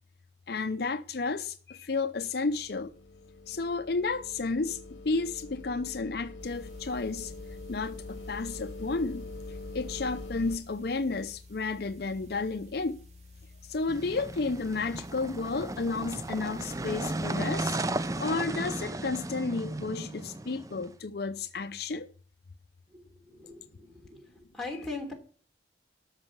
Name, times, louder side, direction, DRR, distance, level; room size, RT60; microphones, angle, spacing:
voice 1, 0.5-2.9 3.5-7.3 7.7-9.3 9.7-13.0 13.6-17.8 18.2-22.1 24.7-24.8, left 3 dB, 55° left, 0.6 m, -32 dB
sound 1, 2.5-10.6, left 2 dB, 85° left, 0.9 m, -44 dB
sound 2, 6.4-18.3, left 3 dB, 40° right, 2.0 m, -53 dB
sound 3, 13.9-20.9, right 2 dB, 20° right, 0.4 m, -35 dB
voice 2, 22.9-24.2 24.5-25.1, left 3 dB, ahead, 3.2 m, -40 dB
13.5 x 5.5 x 7.3 m
head